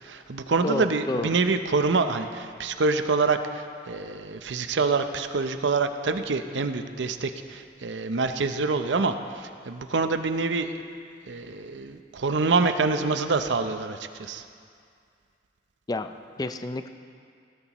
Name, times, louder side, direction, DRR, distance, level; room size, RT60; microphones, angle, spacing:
voice 1, 0.0-10.7 11.3-14.4, right 4 dB, 90° right, 8 dB, 0.6 m, -26 dB
voice 2, 0.6-1.3 15.9-16.9, left 2 dB, 20° left, 9 dB, 0.4 m, -30 dB
17.0 x 12.5 x 3.0 m, 2.3 s
head